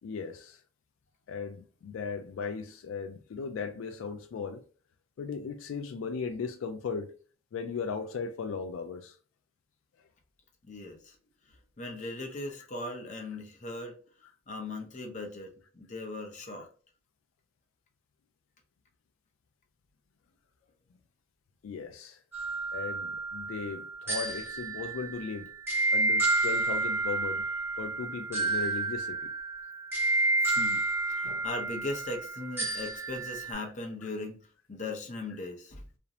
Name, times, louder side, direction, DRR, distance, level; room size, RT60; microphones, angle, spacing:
voice 1, 0.0-0.6 1.3-4.6 5.2-7.1 7.5-9.2 21.6-22.2 22.7-25.5 25.9-27.5 27.8-29.3 31.2-31.4, left 5 dB, 80° left, 0.3 m, -37 dB
voice 2, 10.6-11.2 11.5-14.0 14.5-16.7 30.4-35.8, left 2 dB, 35° left, 0.6 m, -39 dB
sound 1, 22.3-33.5, right 2 dB, 10° right, 0.8 m, -30 dB
2.5 x 2.0 x 2.7 m
head